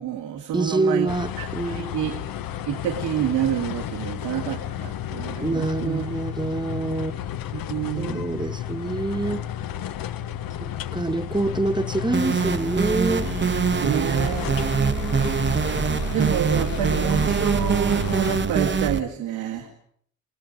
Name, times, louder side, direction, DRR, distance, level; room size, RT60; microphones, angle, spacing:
voice 1, 0.0-1.1 1.4-2.2 2.7-6.0 7.5-8.5 13.4-14.5 16.1-19.7, right 10 dB, 90° right, 2.3 m, -28 dB
voice 2, 0.5-1.9 5.4-7.2 7.9-9.4 10.6-13.3 14.5-15.4, right 2 dB, 10° right, 1.3 m, -26 dB
sound 1, 1.1-18.4, left 11 dB, 65° left, 0.9 m, -32 dB
sound 2, 12.1-19.0, right 6 dB, 30° right, 1.0 m, -24 dB
28.5 x 17.0 x 5.3 m
supercardioid pair, 70°, 37 cm